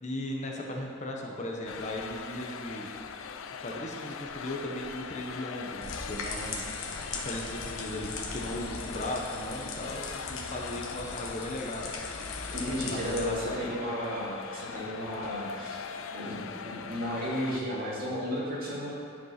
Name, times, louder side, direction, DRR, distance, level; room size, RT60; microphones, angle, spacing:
voice 1, 0.0-2.9 3.6-6.7 7.1-11.9 12.5-13.8, left 1 dB, 35° left, 0 dB, 0.9 m, -37 dB
sound 1, 1.7-17.6, left 6 dB, 65° left, 0.5 m, -41 dB
sound 2, 5.8-13.3, left 3 dB, 85° left, 1.3 m, -39 dB
voice 2, 12.5-15.8 16.1-18.9, equal, 45° right, -6 dB, 2.5 m, -33 dB
11.0 x 5.2 x 5.7 m, 2.5 s
head